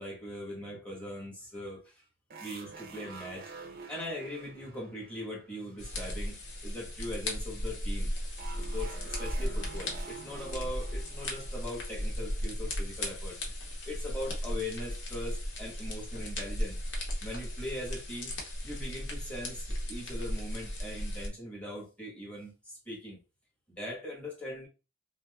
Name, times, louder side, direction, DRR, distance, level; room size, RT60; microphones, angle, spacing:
voice 1, 0.0-2.0 2.4-3.5 3.9-8.1 8.6-13.4 13.9-16.8 17.2-18.3 18.6-23.2 23.7-24.7, left 1 dB, 5° left, 1.2 m, -40 dB
sound 1, 2.3-6.2 8.4-12.8, right 4 dB, 50° right, 0.5 m, -48 dB
sound 2, 5.8-21.3, equal, 65° left, 1.0 m, -36 dB
5.2 x 2.0 x 2.3 m
head